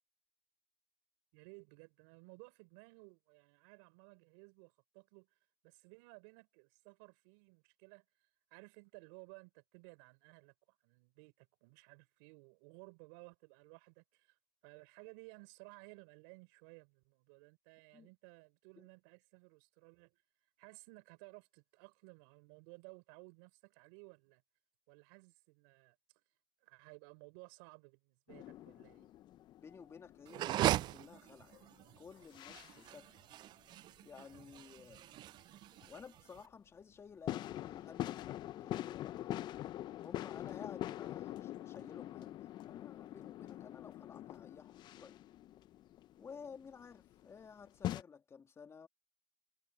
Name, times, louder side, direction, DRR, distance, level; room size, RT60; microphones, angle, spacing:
voice 1, 1.3-5.3 5.6-8.0 8.5-20.2 20.6-24.4 24.9-26.0 26.6-29.1, right 32 dB, 70° right, 5.9 m, -58 dB
sound 1, 28.3-31.8 32.1-32.9 35.8-35.9 37.3-48.0, left 13 dB, 40° left, 0.5 m, -44 dB
voice 2, 29.6-31.6 32.0-33.2 34.0-35.1 35.9-39.5 40.0-45.2 46.2-48.9, left 6 dB, 25° left, 2.3 m, -54 dB
sound 2, 30.3-36.4, right 14 dB, 40° right, 0.4 m, -38 dB
supercardioid pair, 115°, 11 cm